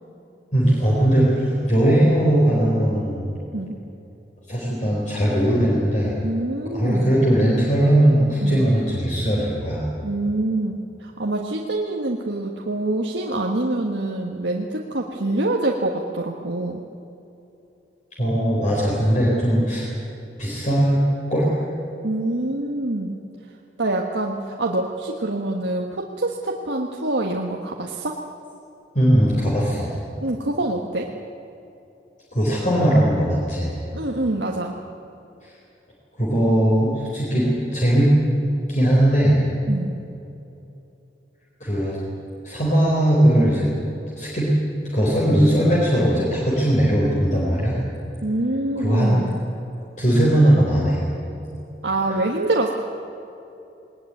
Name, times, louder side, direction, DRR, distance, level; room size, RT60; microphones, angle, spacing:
voice 1, 0.5-3.3 4.5-6.1 6.6-9.8 18.2-19.9 20.4-21.0 21.3-21.5 28.9-29.9 32.3-33.7 35.4-35.5 36.2-38.2 38.7-39.4 41.6-42.0 42.4-43.7 44.1-44.5 44.9-47.8 48.8-49.2 50.0-51.0, right 1 dB, 40° left, -5 dB, 4.5 m, -19 dB
voice 2, 6.2-7.2 8.4-8.6 10.0-16.8 22.0-23.2 23.8-28.2 30.2-31.1 33.9-34.8 39.7-39.9 48.2-49.4 51.8-52.7, right 2 dB, 80° right, 0 dB, 1.5 m, -25 dB
20.5 x 20.0 x 9.2 m, 2.9 s
head